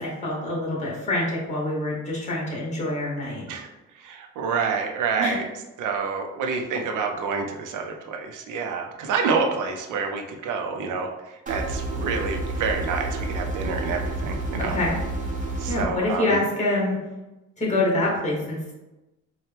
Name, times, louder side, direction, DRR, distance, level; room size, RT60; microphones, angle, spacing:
voice 1, 0.0-3.4 5.2-5.4 14.6-15.0 15.7-17.0 17.6-18.7, left 2 dB, 25° left, -3 dB, 1.5 m, -26 dB
voice 2, 4.0-5.5 5.8-11.1 11.5-14.8 15.6-16.4, right 5 dB, 85° right, 3 dB, 0.6 m, -28 dB
sound 1, 11.5-15.8, right 2 dB, 25° right, 1.1 m, -29 dB
4.3 x 2.3 x 3.4 m, 1.0 s
cardioid pair, 90°, 30 cm